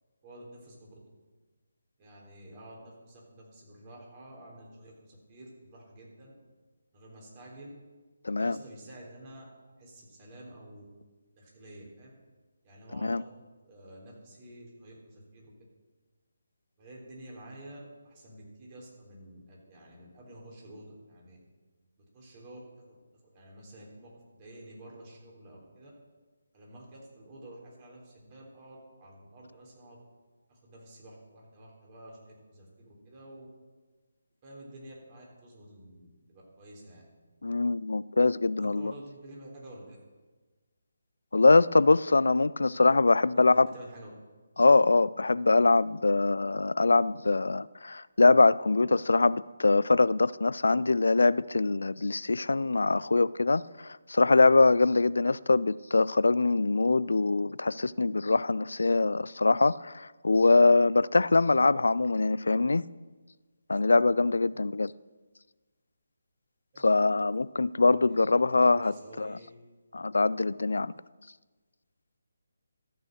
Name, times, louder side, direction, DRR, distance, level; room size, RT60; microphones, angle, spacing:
voice 1, 0.2-0.9 2.0-6.3 6.9-7.7 8.3-9.4 9.8-10.9 11.4-12.1 12.6-13.4 13.6-15.5 16.8-21.4 22.1-22.6 22.9-23.0 23.3-25.9 26.5-30.0 30.5-33.5 34.4-37.0 38.6-40.0 43.5-44.1 66.7-66.8 67.2-67.3 67.8-69.5, right 1 dB, 30° right, 3.5 m, -50 dB
voice 2, 8.2-8.6 12.9-13.2 37.4-38.9 41.3-43.7 44.6-62.8 63.7-64.9 66.8-69.4 69.9-70.9, left 3 dB, 75° left, 0.3 m, -23 dB
13.5 x 6.2 x 6.5 m
figure-of-eight pair, 150°, 0 cm